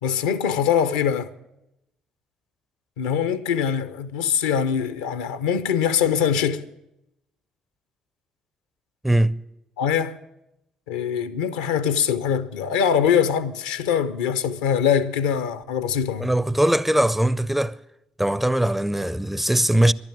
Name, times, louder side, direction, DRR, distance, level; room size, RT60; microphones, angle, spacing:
voice 1, 0.0-1.3 3.0-6.6 9.8-10.2 10.9-16.3, left 8 dB, 75° left, 0.6 m, -23 dB
voice 2, 9.0-9.4 16.2-17.8 18.2-19.9, right 1 dB, 5° right, 0.4 m, -20 dB
11.5 x 9.6 x 9.2 m
figure-of-eight pair, 45°, 3 cm